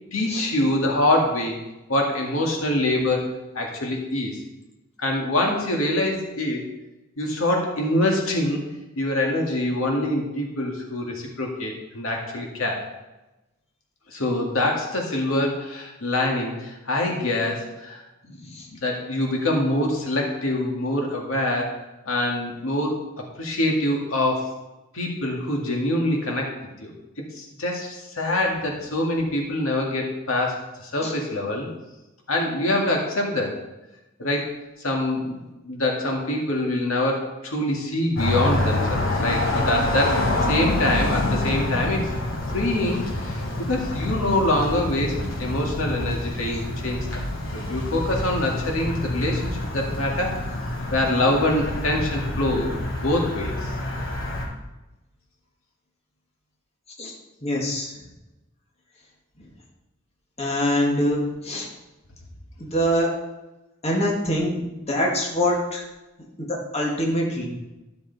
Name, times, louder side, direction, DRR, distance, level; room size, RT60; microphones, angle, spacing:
voice 1, 0.1-1.6 1.9-3.3 3.5-4.4 5.0-6.7 7.2-8.6 9.0-12.8 14.1-18.4 18.7-21.8 22.1-24.5 24.9-26.5 26.8-26.9 27.3-31.7 32.3-33.6 34.2-34.5 34.8-42.1 42.5-47.1 47.5-50.4 50.9-53.7, left 1 dB, 85° left, 0 dB, 2.1 m, -25 dB
sound 1, 38.2-54.4, left 1 dB, 70° left, 2.8 m, -27 dB
voice 2, 57.4-57.9 60.4-61.7 62.6-63.1 63.8-65.8 66.5-67.5, equal, 30° left, -2 dB, 1.9 m, -24 dB
13.0 x 6.9 x 4.1 m, 1.0 s
head